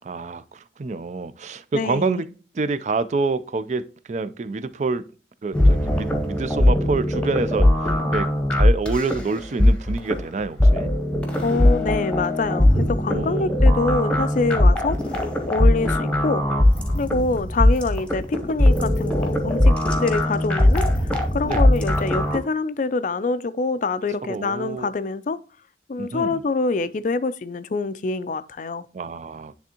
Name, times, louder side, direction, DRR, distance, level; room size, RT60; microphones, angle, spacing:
voice 1, 0.0-2.3 2.5-5.1 5.4-7.7 8.1-10.9 13.1-13.6 21.5-21.6 24.3-24.9 26.0-26.4 28.9-29.6, right 3 dB, 40° right, 0.4 m, -27 dB
voice 2, 1.7-2.2 11.4-16.4 16.9-25.4 25.9-28.9, left 3 dB, 45° left, 0.4 m, -25 dB
sound 1, 5.5-22.4, left 1 dB, 5° left, 0.9 m, -20 dB
10.0 x 3.5 x 2.8 m
head